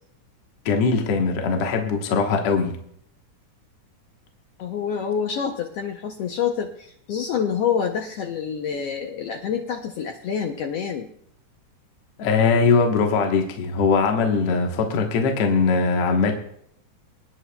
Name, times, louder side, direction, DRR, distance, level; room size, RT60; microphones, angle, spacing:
voice 1, 0.7-2.7 12.2-16.3, left 4 dB, 60° left, 3 dB, 1.9 m, -21 dB
voice 2, 4.6-11.1, left 7 dB, 85° left, 3 dB, 1.3 m, -27 dB
26.0 x 10.0 x 2.2 m, 0.68 s
omnidirectional pair, 3.8 m